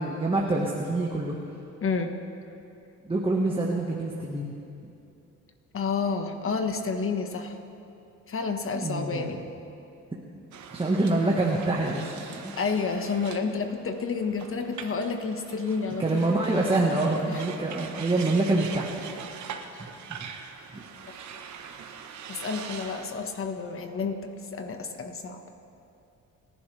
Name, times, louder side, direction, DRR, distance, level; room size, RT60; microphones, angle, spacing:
voice 1, 0.0-1.3 3.0-4.5 4.8-4.9 8.7-9.4 10.7-12.5 16.0-18.9 20.2-20.3 20.7-20.8, right 2 dB, 20° right, -2 dB, 1.5 m, -26 dB
voice 2, 1.8-2.1 5.7-7.6 8.3-9.4 12.6-16.2 17.3-17.4 22.3-25.4, left 5 dB, 45° left, 6 dB, 1.5 m, -30 dB
sound 1, 10.5-23.1, right 7 dB, 70° right, 1.2 m, -42 dB
28.5 x 11.5 x 3.4 m, 2.8 s
cardioid pair, 90°, 30 cm